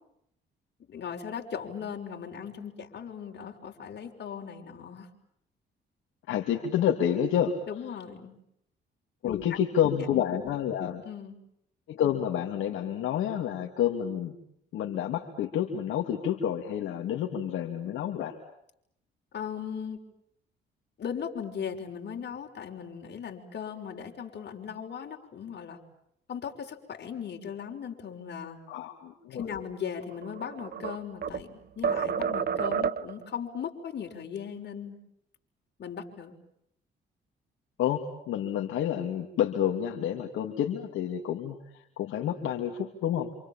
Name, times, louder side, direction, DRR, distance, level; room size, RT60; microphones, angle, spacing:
voice 1, 0.9-5.1 7.7-8.4 9.2-9.6 10.4-10.5 11.0-11.3 19.3-20.0 21.0-25.8 26.3-28.6 29.3-35.0 35.8-36.3, left 7 dB, 60° left, 3 dB, 6.0 m, -38 dB
voice 2, 6.3-7.6 9.2-11.0 11.9-14.4 14.7-18.4 28.7-29.5 37.8-43.3, left 9 dB, 80° left, 2 dB, 3.0 m, -29 dB
sound 1, 30.1-31.5 31.8-33.2, right 7 dB, 50° right, 1.2 m, -30 dB
28.5 x 27.5 x 7.4 m, 0.76 s
cardioid pair, 90°, 20 cm